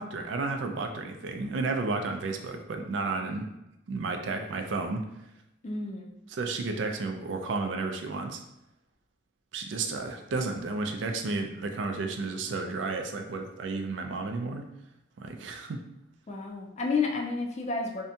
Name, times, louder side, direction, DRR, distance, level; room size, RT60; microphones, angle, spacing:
voice 1, 0.0-3.5 3.9-5.1 6.3-8.4 9.5-14.7 15.2-15.8, right 3 dB, 80° right, 4 dB, 0.4 m, -32 dB
voice 2, 5.6-6.1 16.3-18.0, left 4 dB, 35° left, 0 dB, 0.4 m, -31 dB
2.6 x 2.2 x 2.6 m, 0.87 s
head